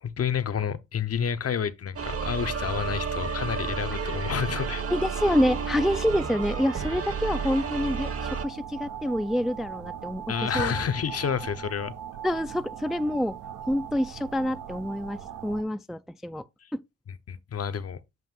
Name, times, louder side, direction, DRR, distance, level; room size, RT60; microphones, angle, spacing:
voice 1, 0.0-4.8 10.3-11.9 17.3-18.0, left 7 dB, 50° left, 0.8 m, -29 dB
sound 1, 2.0-8.5, right 5 dB, 50° right, 1.0 m, -31 dB
sound 2, 4.4-15.6, right 9 dB, 80° right, 0.8 m, -40 dB
voice 2, 4.9-10.7 12.2-13.4 13.7-16.4 16.7-16.8, equal, ahead, 0.3 m, -27 dB
7.7 x 2.6 x 5.3 m
cardioid pair, 60°, 31 cm